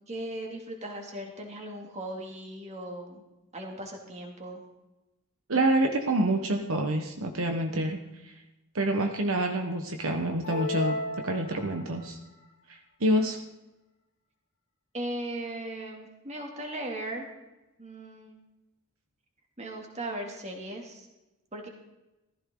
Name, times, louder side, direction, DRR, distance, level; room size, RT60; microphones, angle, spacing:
voice 1, 0.1-3.2 3.5-4.6 14.9-17.3 17.8-18.4 19.6-21.1 21.5-21.7, right 1 dB, 30° right, 1 dB, 2.7 m, -38 dB
voice 2, 5.5-8.0 8.7-11.0 11.2-12.2 12.7-13.4, right 1 dB, 70° right, 4 dB, 1.3 m, -27 dB
sound 1, 10.4-12.1, left 3 dB, 60° left, 1.8 m, -34 dB
15.5 x 14.5 x 3.9 m, 0.99 s
head